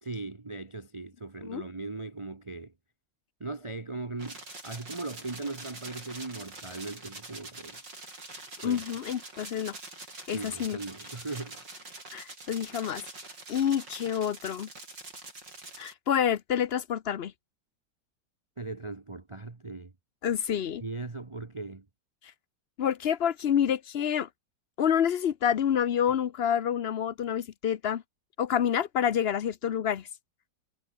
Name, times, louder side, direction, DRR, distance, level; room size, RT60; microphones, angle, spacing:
voice 1, 0.0-2.7 3.4-7.8 8.6-8.8 10.3-11.6 18.6-19.9 20.8-21.9, right 3 dB, 20° right, 0.9 m, -38 dB
sound 1, 4.2-15.9, right 2 dB, 75° right, 7.4 m, -45 dB
voice 2, 8.6-9.8 10.3-10.8 12.1-13.1 13.5-14.7 15.8-17.3 20.2-20.8 22.8-24.3 24.8-28.0 28.4-30.1, left 9 dB, 65° left, 0.6 m, -28 dB
omnidirectional pair, 2.0 m